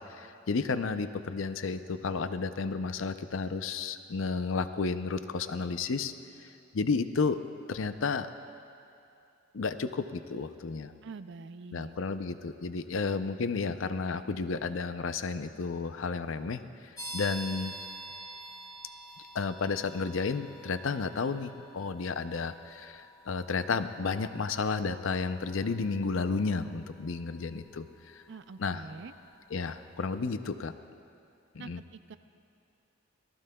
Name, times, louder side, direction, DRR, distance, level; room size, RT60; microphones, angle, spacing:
voice 1, 0.0-6.1 6.7-7.4 7.7-8.3 9.5-10.9 11.7-17.7 19.3-28.2 28.6-28.8 29.5-30.7 31.5-31.8, left 4 dB, 75° left, 10 dB, 0.6 m, -32 dB
voice 2, 11.0-11.9 28.3-29.1 31.6-32.2, right 4 dB, 60° right, 12 dB, 0.5 m, -45 dB
sound 1, 17.0-29.5, right 1 dB, 20° left, 1.6 m, -48 dB
27.0 x 19.0 x 2.3 m, 2.6 s
head